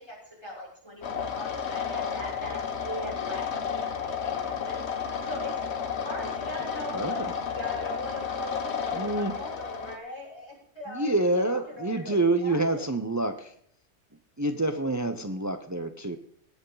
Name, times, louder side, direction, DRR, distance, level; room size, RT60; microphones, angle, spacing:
voice 1, 0.0-4.8 5.3-7.2 7.5-12.2 12.4-12.9, left 1 dB, 20° left, -5 dB, 5.5 m, -40 dB
sound 1, 1.0-10.0, left 6 dB, 65° left, 1.3 m, -32 dB
voice 2, 6.9-7.3 8.9-9.3 10.9-13.5 14.4-16.2, right 2 dB, 20° right, 9 dB, 0.5 m, -27 dB
19.0 x 8.0 x 4.0 m, 0.66 s
omnidirectional pair, 1.2 m